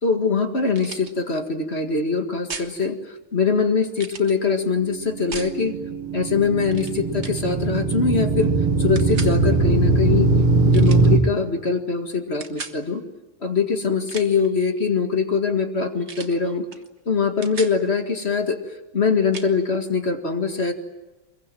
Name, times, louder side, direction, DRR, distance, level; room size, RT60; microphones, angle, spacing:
voice 1, 0.0-5.8 6.1-8.5 8.8-10.3 10.6-13.0 13.4-16.6 17.1-18.6 18.9-20.7, left 5 dB, 30° left, 5 dB, 2.0 m, -23 dB
sound 1, 0.7-1.1 2.5-2.7 3.9-4.3 5.3-5.5 6.7-6.9 7.2-7.4 8.9-9.3 10.7-11.1 12.4-12.8 13.9-14.5 16.1-16.4 16.7-16.9 17.2-17.8 19.3-19.5, right 4 dB, 35° right, 1.6 m, -36 dB
sound 2, 5.3-11.2, right 3 dB, 90° right, 2.5 m, -20 dB
25.0 x 22.5 x 9.1 m, 1.1 s
omnidirectional pair, 2.3 m